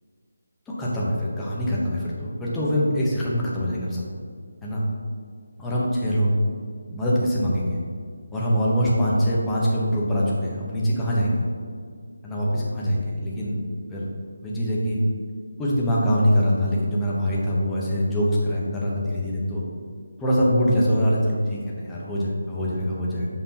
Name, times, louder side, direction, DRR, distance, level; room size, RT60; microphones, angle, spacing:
voice 1, 0.8-4.0 4.6-4.8 5.6-6.3 6.9-7.8 8.3-11.4 12.2-13.6 13.9-14.1 14.4-15.0 15.6-19.6 20.2-23.3, equal, 5° left, -7 dB, 1.0 m, -23 dB
9.4 x 5.9 x 2.9 m, 2.1 s
figure-of-eight pair, 170°, 0 cm